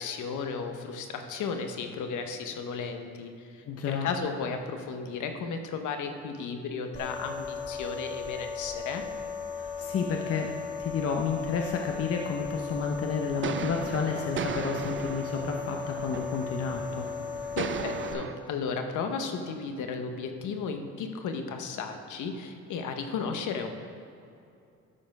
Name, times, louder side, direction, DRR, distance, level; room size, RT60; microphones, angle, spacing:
voice 1, 0.0-9.0 17.6-23.7, left 5 dB, 80° left, 5 dB, 1.0 m, -34 dB
voice 2, 3.7-4.1 9.6-10.5 10.8-17.1, left 5 dB, 50° left, 2 dB, 0.7 m, -31 dB
sound 1, 6.9-18.1, left 6 dB, 25° left, 2.0 m, -37 dB
sound 2, 13.4-18.4, right 7 dB, 40° right, 0.5 m, -36 dB
12.5 x 4.2 x 5.4 m, 2.6 s
cardioid pair, 90°, 30 cm